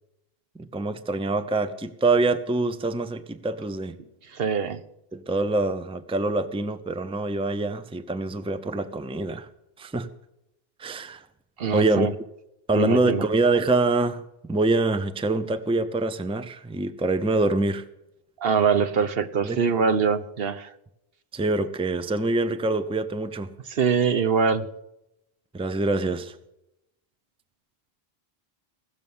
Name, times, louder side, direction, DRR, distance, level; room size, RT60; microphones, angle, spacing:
voice 1, 0.6-3.9 5.1-9.5 9.8-10.1 10.8-11.2 11.7-12.1 12.7-14.2 14.5-17.8 19.4-19.6 21.3-23.5 25.5-26.4, right 2 dB, 5° right, 11 dB, 0.6 m, -25 dB
voice 2, 4.3-4.8 11.6-12.1 12.7-13.2 18.4-20.7 23.7-24.7, right 6 dB, 70° right, 11 dB, 1.0 m, -23 dB
17.0 x 7.0 x 9.3 m, 0.86 s
omnidirectional pair, 1.0 m